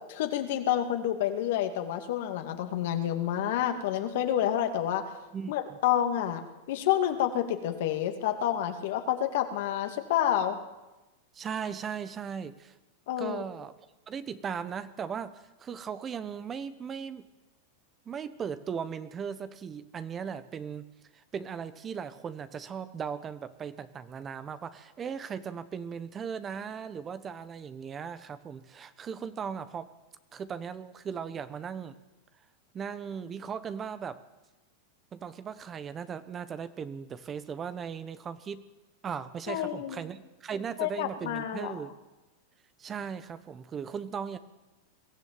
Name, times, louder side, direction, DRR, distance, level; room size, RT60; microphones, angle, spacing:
voice 1, 0.1-5.0 5.5-10.6 13.1-13.4 39.5-40.0 40.8-41.7, left 11 dB, 70° left, 6 dB, 2.3 m, -29 dB
voice 2, 5.3-5.8 11.3-12.8 13.2-13.7 14.1-17.3 18.1-20.9 21.1-29.9 30.3-32.0 32.7-34.2 35.1-38.7 39.0-41.9 42.8-44.4, right 7 dB, 25° right, 13 dB, 1.1 m, -38 dB
22.0 x 13.5 x 9.1 m, 1.1 s
hypercardioid pair, 115°, 0 cm